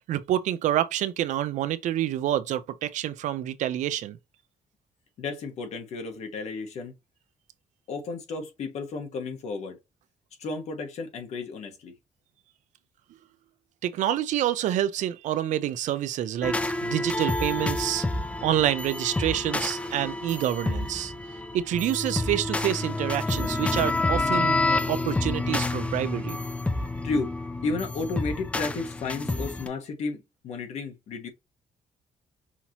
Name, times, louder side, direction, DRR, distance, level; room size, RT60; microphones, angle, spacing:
voice 1, 0.1-4.2 13.8-18.0 18.4-21.1 21.5-24.6 24.9-26.4, right 12 dB, 70° right, 0.5 m, -27 dB
voice 2, 5.2-6.9 7.9-9.8 10.4-11.9 27.0-27.3 27.6-30.2 30.4-31.3, left 3 dB, 60° left, 1.3 m, -32 dB
sound 1, 16.4-29.7, left 2 dB, 10° left, 0.4 m, -29 dB
5.7 x 2.8 x 2.9 m
cardioid pair, 175°, 13 cm